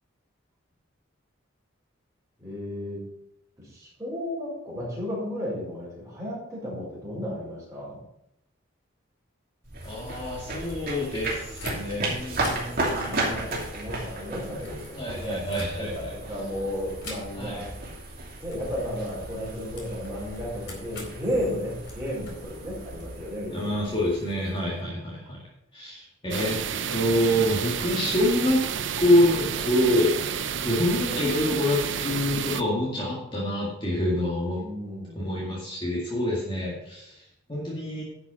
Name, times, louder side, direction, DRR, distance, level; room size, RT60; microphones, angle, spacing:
voice 1, 2.4-3.0 3.6-8.0 12.9-17.7 18.4-23.7 34.6-35.3, equal, 15° right, -6 dB, 4.7 m, -34 dB
sound 1, 9.6-12.1 12.3-16.2 17.0-17.7 17.9-18.1 18.5-23.1, left 3 dB, 60° left, 4.1 m, -46 dB
sound 2, 9.6-24.8, right 2 dB, 45° right, 2.7 m, -35 dB
voice 2, 9.8-13.5 15.0-16.1 17.4-17.7 23.5-25.4 25.7-26.6 26.9-28.6 29.0-30.2 30.6-34.6 35.2-38.0, left 1 dB, 25° left, -5 dB, 2.1 m, -26 dB
sound 3, 26.3-32.6, right 7 dB, 60° right, 0.6 m, -30 dB
11.0 x 5.9 x 5.8 m, 0.81 s
head